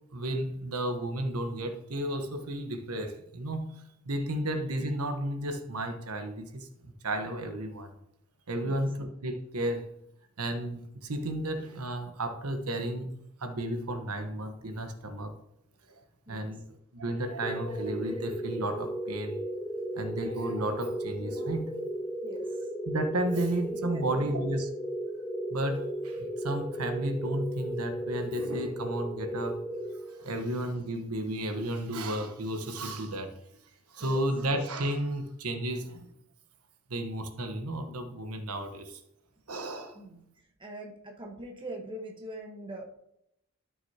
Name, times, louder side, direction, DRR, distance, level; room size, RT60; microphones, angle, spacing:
voice 1, 0.1-3.7 4.0-7.9 8.5-9.9 10.4-13.1 13.4-15.3 15.9-16.0 16.3-16.6 16.9-19.4 19.9-21.7 22.9-24.7 25.5-29.6 30.1-33.3 33.9-36.1 36.9-39.0 39.5-40.0, right 1 dB, 85° right, 6 dB, 1.1 m, -33 dB
sound 1, 17.4-30.6, right 1 dB, 10° left, 0.5 m, -35 dB
voice 2, 23.8-24.3 34.0-34.3 39.9-40.2 40.6-43.0, right 1 dB, 20° right, 1 dB, 1.2 m, -42 dB
13.0 x 6.2 x 2.8 m, 0.78 s
head